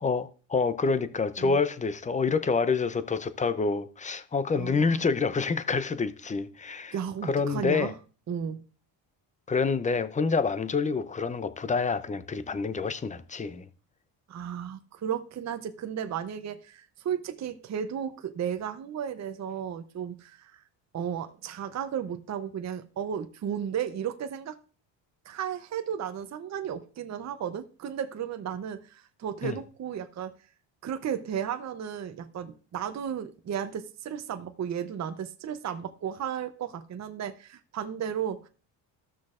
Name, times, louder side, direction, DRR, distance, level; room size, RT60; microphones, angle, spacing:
voice 1, 0.0-6.9 7.2-7.9 9.5-13.7 29.4-29.6, left 4 dB, 15° left, 0.5 m, -27 dB
voice 2, 4.6-5.1 6.9-7.9 8.3-8.6 14.3-20.6 20.9-24.6 25.3-30.3 30.8-38.5, right 8 dB, 35° right, 0.7 m, -34 dB
15.0 x 6.2 x 2.5 m
cardioid pair, 100°, 49 cm